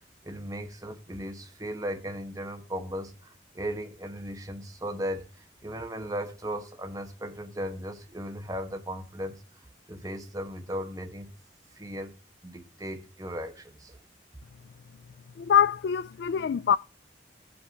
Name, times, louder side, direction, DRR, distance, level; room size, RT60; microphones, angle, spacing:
voice 1, 0.2-9.4 9.9-11.3 11.7-12.1 12.4-14.0, equal, 20° right, 1.0 m, -36 dB
voice 2, 15.4-16.8, left 8 dB, 65° left, 0.3 m, -24 dB
15.5 x 5.3 x 2.8 m
head